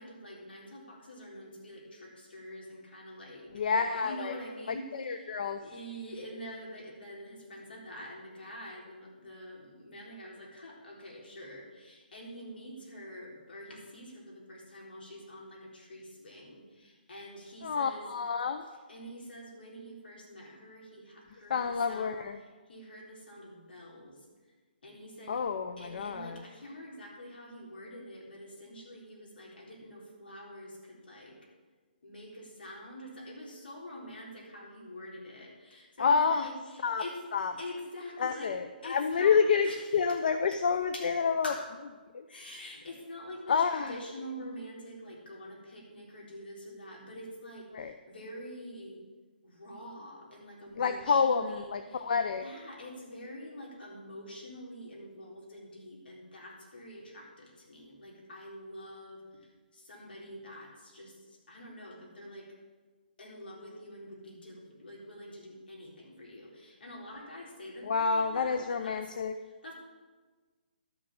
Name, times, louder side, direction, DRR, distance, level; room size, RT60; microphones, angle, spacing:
voice 1, 0.0-3.5 3.9-5.3 5.6-18.1 18.9-24.2 24.8-25.5 25.8-31.4 32.0-38.5 38.8-40.2 40.9-41.1 41.4-41.7 42.3-49.0 49.4-52.1 52.4-62.5 63.2-69.1 69.4-69.7, equal, 75° left, -2 dB, 3.9 m, -46 dB
voice 2, 3.5-4.3 4.7-5.6 17.6-18.7 21.5-22.4 25.3-26.4 36.0-36.5 36.8-37.0 37.3-37.5 38.2-41.5 42.1-42.3 43.5-43.9 47.7-47.9 50.8-52.4 67.8-69.3, left 5 dB, 55° left, 9 dB, 0.6 m, -28 dB
12.0 x 6.1 x 7.3 m, 1.4 s
hypercardioid pair, 155°, 5 cm